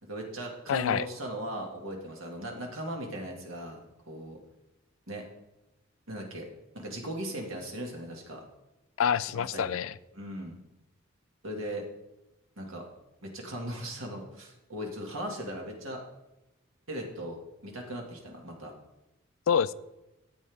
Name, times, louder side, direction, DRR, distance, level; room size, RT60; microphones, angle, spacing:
voice 1, 0.0-3.8 4.1-4.4 5.1-5.3 6.1-6.5 6.7-8.4 9.3-9.8 10.1-10.6 11.4-11.9 12.6-12.8 13.2-16.0 16.9-18.7, right 1 dB, 85° right, 1 dB, 2.0 m, -38 dB
voice 2, 0.7-1.1 9.0-9.9 19.5-19.7, left 7 dB, 80° left, 17 dB, 0.4 m, -26 dB
13.0 x 8.1 x 3.5 m, 0.97 s
head